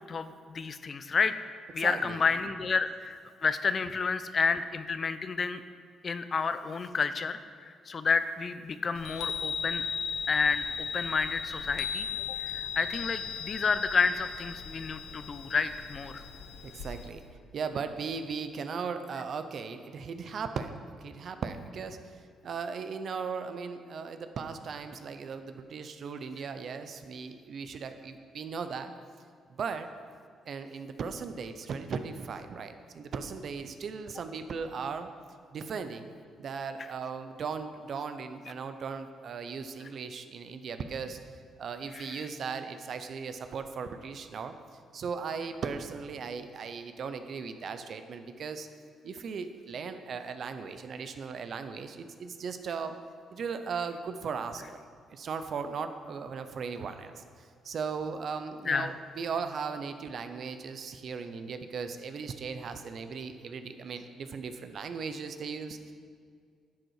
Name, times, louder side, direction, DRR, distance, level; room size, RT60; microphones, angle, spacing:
voice 1, 0.1-1.3 1.7-5.6 6.0-9.8 10.3-12.0 12.4-16.2 41.9-42.2 58.7-58.9, left 5 dB, 40° left, 11 dB, 0.6 m, -30 dB
voice 2, 1.8-2.2 16.6-17.2 17.5-22.0 22.4-28.9 29.6-29.9 30.5-35.1 35.5-36.1 36.4-41.2 41.6-44.5 44.9-48.7 49.0-53.0 53.3-54.8 55.1-57.2 57.6-65.9, right 5 dB, 60° right, 9 dB, 0.8 m, -37 dB
Chime, 9.0-17.1, left 6 dB, 90° left, 0.9 m, -37 dB
10.5 x 7.9 x 4.8 m, 2.1 s
cardioid pair, 90°, 0 cm